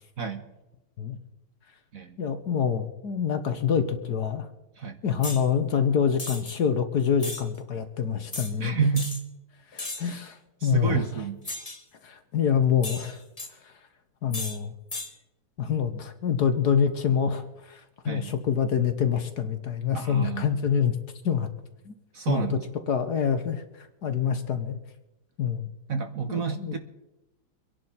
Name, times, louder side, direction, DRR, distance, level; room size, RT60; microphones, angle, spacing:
voice 1, 2.2-4.5 5.0-8.7 9.7-11.0 12.0-13.2 13.6-13.7 14.2-14.7 15.6-21.0 21.2-21.5 21.8-21.9 22.3-22.6 22.9-24.8 25.4-25.7 26.3-26.8, left 7 dB, 55° left, 9 dB, 1.5 m, -26 dB
sound 1, 5.2-5.4 6.2-6.6 7.2-7.4 8.3-8.5 8.9-9.2 9.8-10.1 11.4-11.8 12.8-13.5 14.3-14.6 14.9-15.1, left 2 dB, 20° left, 1.7 m, -35 dB
voice 2, 8.6-9.1 10.0-10.1 10.6-11.5 18.1-18.3 19.9-20.5 22.1-22.6 25.9-26.8, right 5 dB, 50° right, 7 dB, 1.3 m, -28 dB
25.0 x 11.0 x 4.3 m, 0.97 s
omnidirectional pair, 2.2 m